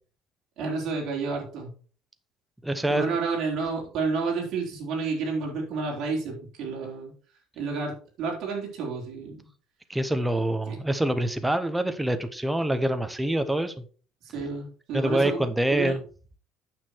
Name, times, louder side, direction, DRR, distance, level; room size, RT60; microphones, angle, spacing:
voice 1, 0.6-1.7 2.9-7.1 7.6-7.9 8.2-9.4 10.7-10.8 14.2-15.9, right 4 dB, 50° right, -2 dB, 4.1 m, -30 dB
voice 2, 2.6-3.1 9.9-13.7 14.9-16.0, right 1 dB, 5° right, 9 dB, 0.8 m, -25 dB
9.2 x 6.7 x 4.5 m, 0.40 s
cardioid pair, 165°, 0 cm